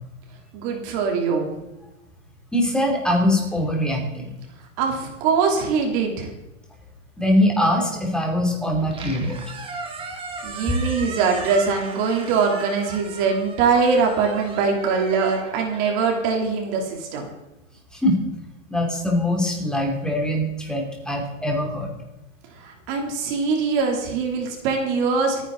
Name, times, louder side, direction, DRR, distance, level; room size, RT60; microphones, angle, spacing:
voice 1, 0.5-1.5 4.8-6.3 10.4-17.3 22.6-25.4, right 5 dB, 40° right, 1 dB, 3.3 m, -22 dB
voice 2, 2.5-4.4 7.2-9.4 17.9-18.2 18.7-21.9, left 1 dB, ahead, 1 dB, 2.9 m, -22 dB
Squeak, 8.8-17.0, right 4 dB, 15° right, 2.1 m, -37 dB
25.5 x 9.9 x 4.0 m, 1.0 s
hypercardioid pair, 145°, 39 cm